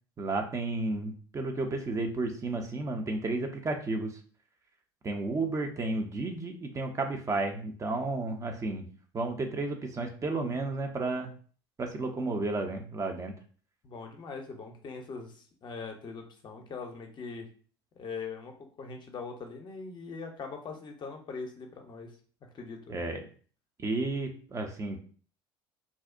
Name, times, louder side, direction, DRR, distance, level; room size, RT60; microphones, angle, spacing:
voice 1, 0.2-4.2 5.0-8.9 9.1-11.3 11.8-13.3 22.9-23.2 23.8-25.0, right 2 dB, 25° right, 4 dB, 0.4 m, -32 dB
voice 2, 13.8-17.5 18.0-22.2 22.5-23.0, left 4 dB, 35° left, 3 dB, 0.6 m, -41 dB
2.5 x 2.0 x 2.4 m, 0.42 s
hypercardioid pair, 75°, 13 cm